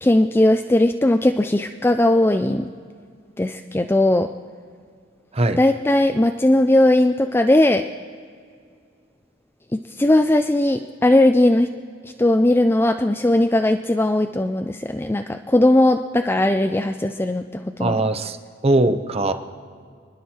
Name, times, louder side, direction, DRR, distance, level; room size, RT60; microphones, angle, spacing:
voice 1, 0.0-2.7 3.4-4.3 5.6-7.8 10.0-11.7 12.2-18.0, left 1 dB, 10° left, 6 dB, 0.4 m, -18 dB
voice 2, 17.8-18.4 18.6-19.3, right 2 dB, 35° right, 8 dB, 0.9 m, -20 dB
29.5 x 10.0 x 4.4 m, 2.1 s
head